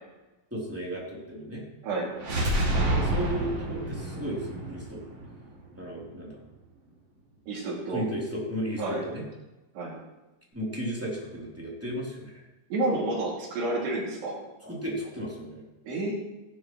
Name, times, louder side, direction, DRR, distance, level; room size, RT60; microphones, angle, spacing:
voice 1, 0.5-1.6 2.9-5.0 5.8-6.4 7.9-9.2 10.5-12.4 14.6-15.6, equal, 5° right, -5 dB, 2.6 m, -34 dB
sound 1, 2.2-6.0, right 1 dB, 40° right, 2.9 m, -29 dB
voice 2, 7.5-8.1 8.8-9.0 9.7-9.9 12.7-14.4 15.8-16.1, right 2 dB, 75° right, -5 dB, 4.7 m, -29 dB
17.0 x 11.0 x 3.2 m, 1.0 s
omnidirectional pair, 4.9 m